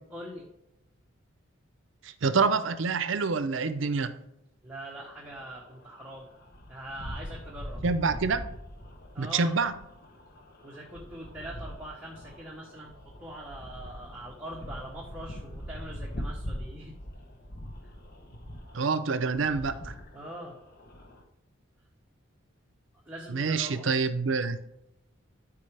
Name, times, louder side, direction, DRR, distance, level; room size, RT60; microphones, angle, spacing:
voice 1, 0.1-0.5 4.6-6.3 6.7-7.8 9.1-9.6 10.6-17.0 17.8-17.9 20.1-20.6 23.1-23.9, right 1 dB, 5° right, -3 dB, 1.0 m, -43 dB
voice 2, 2.0-4.1 7.8-8.4 9.2-9.7 18.7-19.9 23.3-24.6, right 4 dB, 65° right, 12 dB, 0.6 m, -27 dB
sound 1, 5.0-21.2, equal, 50° left, 1.0 m, -42 dB
12.0 x 4.8 x 3.4 m, 0.87 s
head